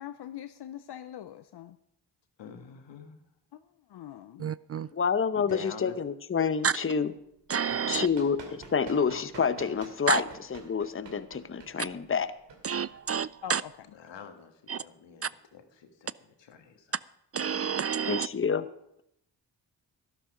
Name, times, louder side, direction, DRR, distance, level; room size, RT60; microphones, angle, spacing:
voice 1, 0.0-1.8 3.5-3.6 3.9-4.5 13.4-13.7, left 10 dB, 65° left, 0.7 m, -42 dB
voice 2, 2.4-3.1 5.3-6.0 13.9-17.0, left 6 dB, 85° left, 1.6 m, -46 dB
voice 3, 4.4-4.9 6.6-6.8 7.5-8.1 10.1-10.2 12.6-13.6 14.7-14.8 15.2-15.3 17.3-18.3, right 7 dB, 35° right, 0.4 m, -29 dB
voice 4, 4.9-7.1 7.9-10.2 10.5-12.3 18.1-18.6, left 6 dB, 30° left, 0.8 m, -28 dB
Run, 7.3-13.8, right 4 dB, 80° right, 2.6 m, -48 dB
12.0 x 11.5 x 5.0 m
cardioid pair, 50°, 43 cm